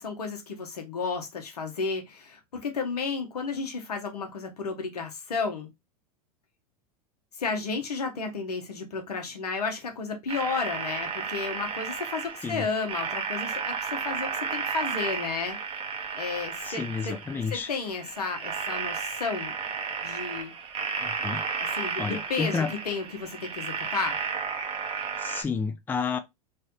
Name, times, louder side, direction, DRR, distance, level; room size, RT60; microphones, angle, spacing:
voice 1, 0.0-5.7 7.4-15.6 16.2-17.2 17.5-19.5 20.0-20.5 21.7-24.2, left 4 dB, 85° left, 0.9 m, -32 dB
sound 1, 10.3-25.4, right 6 dB, 30° right, 0.7 m, -33 dB
voice 2, 16.6-17.7 21.0-21.4 22.0-22.7 25.2-26.2, left 5 dB, 10° left, 0.4 m, -30 dB
3.2 x 2.2 x 2.8 m
hypercardioid pair, 95°, 19 cm